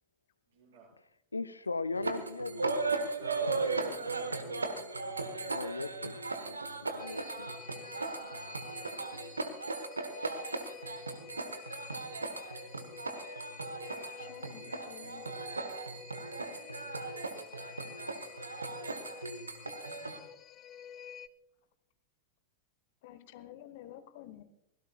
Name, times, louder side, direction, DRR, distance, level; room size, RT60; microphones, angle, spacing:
voice 1, 0.5-0.9 3.2-5.2, right 4 dB, 60° right, -1 dB, 6.0 m, -52 dB
voice 2, 1.3-3.1 3.4-3.9 4.3-4.4 5.4-8.7, left 3 dB, 80° left, 15 dB, 0.5 m, -40 dB
sound 1, 1.9-20.2, right 3 dB, 80° right, 1.2 m, -37 dB
sound 2, 7.0-21.3, left 8 dB, 30° left, 0.6 m, -50 dB
voice 3, 14.1-15.4 23.0-24.4, left 12 dB, 50° left, 12 dB, 1.0 m, -50 dB
24.0 x 16.5 x 2.3 m, 0.79 s
figure-of-eight pair, 90°, 0 cm